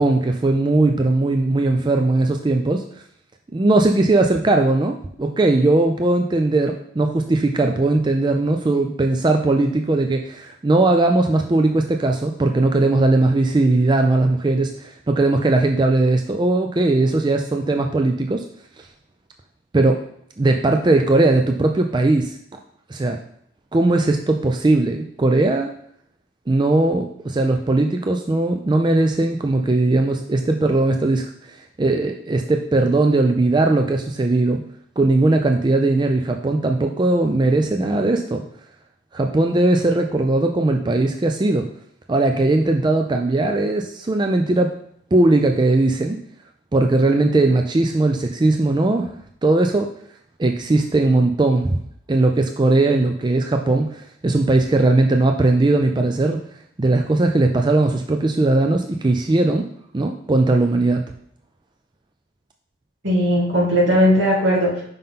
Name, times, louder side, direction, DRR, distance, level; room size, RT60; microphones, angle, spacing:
voice 1, 0.0-2.8 3.5-18.5 19.7-20.0 20.4-22.4 22.9-23.2 23.7-25.7 26.5-34.6 35.0-38.4 39.1-41.7 42.1-44.7 45.1-46.2 46.7-49.1 49.4-49.9 50.4-51.8 52.1-56.4 56.8-59.7 59.9-61.0, right 2 dB, 25° right, 4 dB, 0.4 m, -19 dB
voice 2, 63.0-64.8, equal, 80° right, -4 dB, 2.5 m, -17 dB
5.3 x 3.7 x 5.6 m, 0.66 s
head